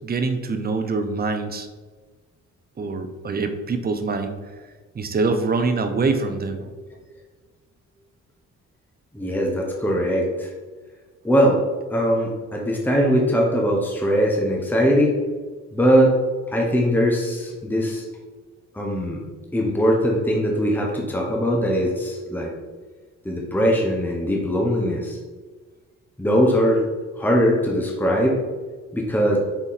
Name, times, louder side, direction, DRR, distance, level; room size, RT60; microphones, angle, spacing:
voice 1, 0.0-1.7 2.8-4.3 4.9-6.7, right 4 dB, 30° right, 7 dB, 0.7 m, -24 dB
voice 2, 9.1-10.5 11.2-11.6 11.9-15.2 15.7-16.1 16.5-18.0 18.7-19.2 19.5-22.5 23.2-25.2 26.2-26.8 27.2-28.4 28.9-29.4, equal, 5° left, -1 dB, 1.1 m, -21 dB
5.8 x 4.0 x 4.1 m, 1.4 s
cardioid pair, 90°, 30 cm